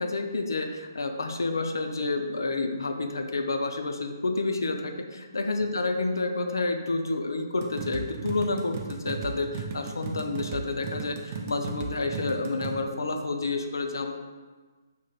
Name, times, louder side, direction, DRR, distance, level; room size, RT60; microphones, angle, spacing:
voice 1, 0.0-14.1, left 3 dB, 70° left, 5 dB, 0.3 m, -29 dB
sound 1, 7.6-12.8, right 5 dB, 35° right, 0.3 m, -36 dB
4.9 x 2.0 x 2.3 m, 1.3 s
figure-of-eight pair, 140°, 2 cm